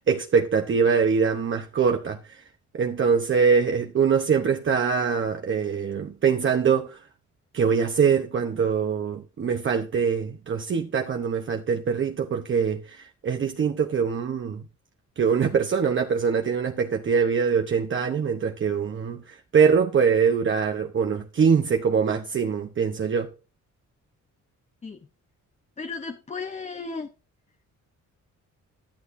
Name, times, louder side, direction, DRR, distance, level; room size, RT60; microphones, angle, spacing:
voice 1, 0.1-2.4 2.7-7.0 7.5-14.6 15.2-23.3, right 6 dB, 40° right, 0.8 m, -23 dB
voice 2, 25.8-27.1, left 4 dB, 25° left, 0.7 m, -34 dB
12.0 x 10.5 x 2.6 m
cardioid pair, 135°, 30 cm